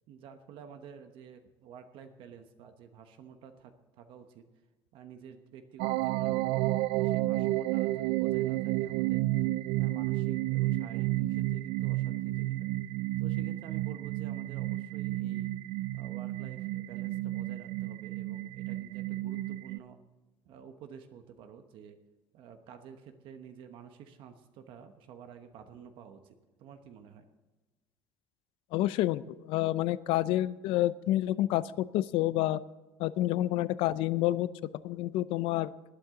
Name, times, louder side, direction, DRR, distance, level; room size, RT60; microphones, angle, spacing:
voice 1, 0.1-4.4 4.9-9.4 9.7-12.7 13.2-15.5 15.9-20.0 20.4-22.0 22.3-27.3, right 7 dB, 65° right, 7 dB, 1.1 m, -50 dB
sound 1, 5.8-19.8, right 17 dB, 85° right, 0.3 m, -31 dB
voice 2, 28.7-32.6 33.0-34.5 34.8-35.7, left 15 dB, 75° left, 17 dB, 0.5 m, -28 dB
19.5 x 9.7 x 3.8 m, 1.2 s
cardioid pair, 145°, 9 cm